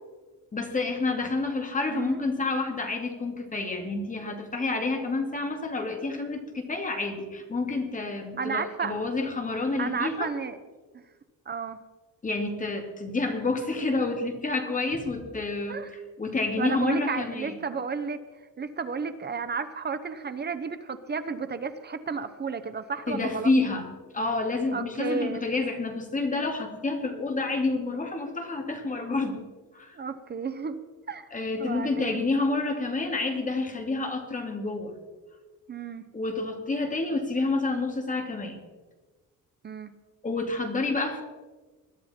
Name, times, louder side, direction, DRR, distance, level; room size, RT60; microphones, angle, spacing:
voice 1, 0.5-10.3 12.2-15.8 16.2-17.5 23.1-23.9 24.1-29.4 29.7-30.0 31.3-34.9 36.1-38.6 40.2-41.2, left 3 dB, 25° left, 3 dB, 2.3 m, -29 dB
voice 2, 1.9-2.2 8.4-9.0 9.8-10.6 11.5-11.8 15.7-15.9 16.6-18.2 18.6-23.5 24.7-25.4 29.9-30.8 31.1-31.3 31.6-32.2 35.7-36.0 39.6-39.9, right 5 dB, 30° right, 11 dB, 0.8 m, -32 dB
21.0 x 12.0 x 4.3 m, 1.3 s
cardioid pair, 150°, 34 cm